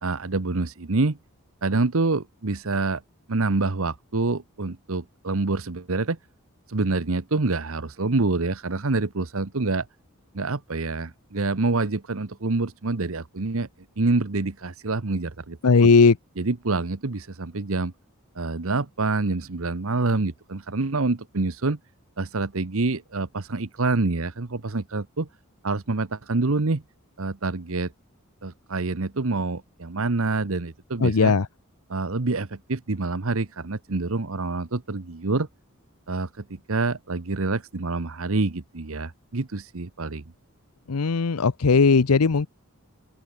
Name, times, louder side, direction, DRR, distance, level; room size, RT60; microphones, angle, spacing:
voice 1, 0.0-1.2 1.6-3.0 3.3-6.2 6.7-9.9 10.3-13.7 14.0-15.6 16.4-17.9 18.3-21.8 22.2-25.3 25.6-26.8 27.2-27.9 28.4-31.3 31.9-35.5 36.1-40.2, right 3 dB, 65° right, 1.0 m, -26 dB
voice 2, 15.6-16.2 31.0-31.5 40.9-42.5, left 4 dB, 85° left, 0.7 m, -18 dB
open air
head